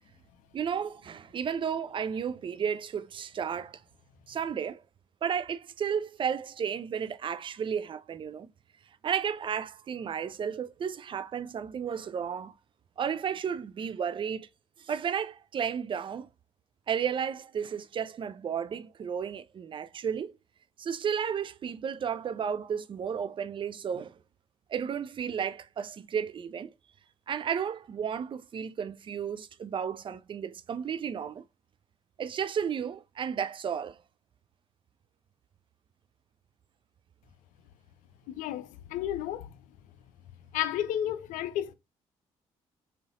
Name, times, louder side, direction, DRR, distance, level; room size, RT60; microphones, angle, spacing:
voice 1, 0.5-3.8 4.3-4.8 5.2-8.5 9.0-12.5 13.0-14.5 14.8-16.3 16.9-20.4 20.8-24.2 24.7-26.7 27.3-31.4 32.2-34.0, right 7 dB, 35° right, 0.4 m, -33 dB
voice 2, 38.3-39.5 40.5-41.7, left 11 dB, 60° left, 0.5 m, -32 dB
3.9 x 3.9 x 2.5 m
figure-of-eight pair, 40°, 15 cm